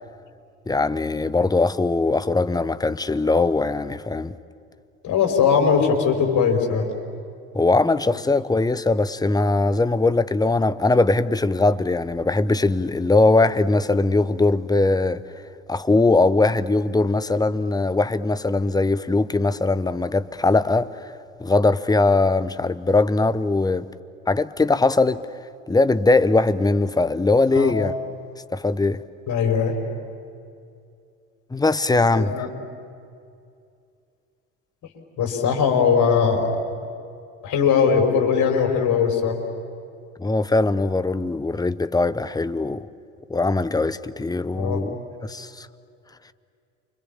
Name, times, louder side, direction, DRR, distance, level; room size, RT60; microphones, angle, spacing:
voice 1, 0.7-4.3 7.5-15.2 15.7-21.1 21.4-23.9 24.3-25.2 25.7-27.9 28.5-29.0 31.5-32.3 40.2-42.9 43.3-45.0 45.2-45.7, left 3 dB, 10° left, 1.0 m, -20 dB
voice 2, 5.0-6.9 27.6-27.7 29.3-29.7 32.1-32.5 35.2-36.5 37.4-39.3 44.6-44.8, left 6 dB, 50° left, 5.0 m, -20 dB
29.0 x 25.0 x 7.3 m
figure-of-eight pair, 60°, 37 cm